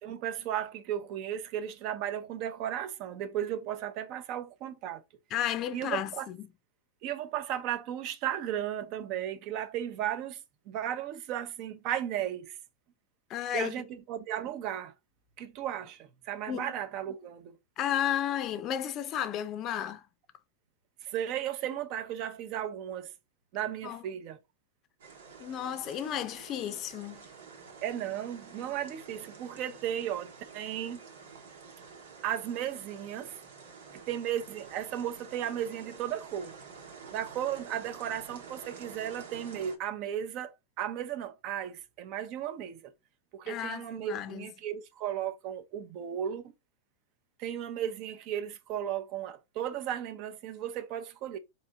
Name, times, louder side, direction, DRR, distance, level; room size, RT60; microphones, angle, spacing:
voice 1, 0.0-5.0 5.7-6.3 7.0-10.4 10.7-12.6 13.5-14.9 15.4-17.6 21.0-23.1 23.5-24.4 27.8-31.0 32.2-33.4 33.9-36.5 37.1-42.9 43.3-46.5 47.4-51.4, right 10 dB, 45° right, 0.7 m, -35 dB
voice 2, 5.3-6.5 13.3-13.7 16.5-16.7 17.8-20.0 23.8-24.0 25.4-27.2 43.5-44.5, left 10 dB, 35° left, 0.5 m, -33 dB
sound 1, 25.0-39.8, right 5 dB, 85° right, 1.3 m, -49 dB
4.1 x 2.8 x 3.5 m
supercardioid pair, 135°, 0 cm